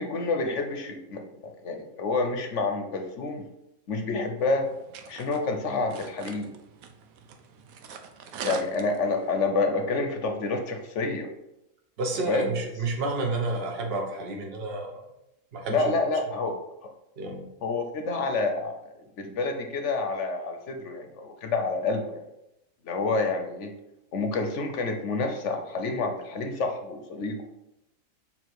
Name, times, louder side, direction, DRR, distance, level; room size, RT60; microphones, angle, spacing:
voice 1, 0.0-3.4 3.9-4.7 5.1-6.5 8.4-11.3 12.3-12.5 15.7-16.6 17.6-18.7 19.2-22.2 22.8-23.7 24.1-27.4, left 3 dB, 60° left, 5 dB, 1.0 m, -28 dB
sound 1, 4.4-9.4, right 6 dB, 75° right, 1.1 m, -43 dB
voice 2, 12.0-15.0 15.5-15.8 17.2-17.5, right 2 dB, 45° right, 1 dB, 1.2 m, -30 dB
7.3 x 2.9 x 4.6 m, 0.88 s
omnidirectional pair, 1.5 m